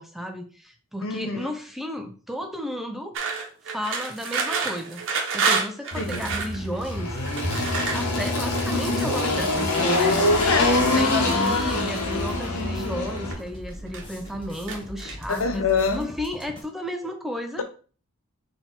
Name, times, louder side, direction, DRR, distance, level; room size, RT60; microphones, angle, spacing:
voice 1, 0.0-3.2 3.7-5.0 5.3-7.2 7.9-10.2 10.8-17.6, equal, ahead, 4 dB, 0.4 m, -33 dB
voice 2, 1.0-1.5 6.0-6.3 8.7-9.1 10.4-11.2 15.3-16.1, left 5 dB, 65° left, 6 dB, 0.8 m, -26 dB
sound 1, 3.1-6.6 7.2-9.3 9.9-10.5 10.9-11.8 12.7-13.4 13.7-14.3 14.7-15.4, right 5 dB, 60° right, 0.9 m, -30 dB
Engine, 5.9-13.3, left 2 dB, 85° left, 1.1 m, -24 dB
sound 2, 10.3-16.6, equal, 20° left, 1.1 m, -40 dB
4.0 x 2.9 x 4.0 m, 0.39 s
head